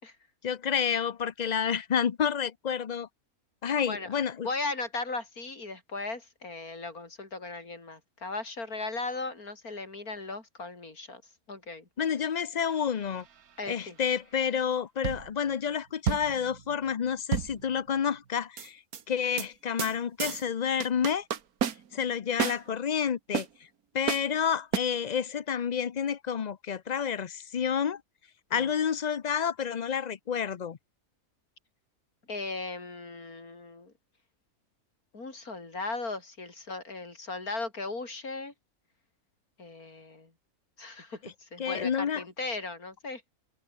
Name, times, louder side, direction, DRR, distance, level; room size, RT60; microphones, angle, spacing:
voice 1, 0.4-3.1 3.6-4.5 12.0-13.2 13.7-18.8 19.1-21.3 21.9-23.5 23.9-28.0 28.5-30.8 41.2-41.3 41.6-42.2, left 7 dB, 45° left, 0.5 m, -29 dB
voice 2, 4.4-11.2 11.5-11.8 13.6-14.0 28.5-28.7 32.3-33.9 35.1-38.5 39.6-40.3 40.8-41.2 41.5-43.2, left 3 dB, 85° left, 4.4 m, -37 dB
sound 1, 12.6-13.2 15.0-15.5 16.1-18.1 18.6-19.0 19.4-19.5 19.8-19.9 20.2-20.4 20.8-22.1 22.4-22.6 23.3-23.5 24.1-24.3 24.7-24.8, right 8 dB, 85° right, 1.8 m, -31 dB
omnidirectional pair, 1.5 m